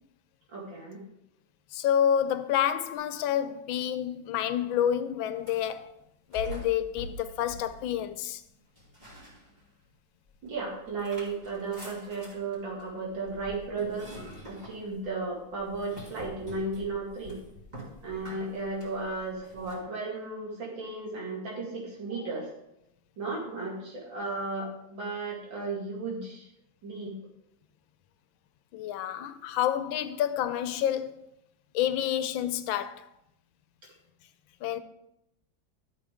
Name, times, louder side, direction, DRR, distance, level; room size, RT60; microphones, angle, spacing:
voice 1, 0.5-1.0 10.4-17.4 18.0-22.5 23.2-26.5 26.8-27.2 29.5-29.6, right 3 dB, 75° right, 2.9 m, -35 dB
voice 2, 1.7-5.9 6.3-8.4 28.7-31.1 31.7-33.1 34.6-34.8, left 10 dB, 85° left, 1.4 m, -28 dB
sound 1, 5.3-5.8 6.3-8.3 8.8-9.9 10.3-19.8, equal, 20° right, 2.9 m, -46 dB
12.5 x 6.7 x 3.5 m
omnidirectional pair, 2.1 m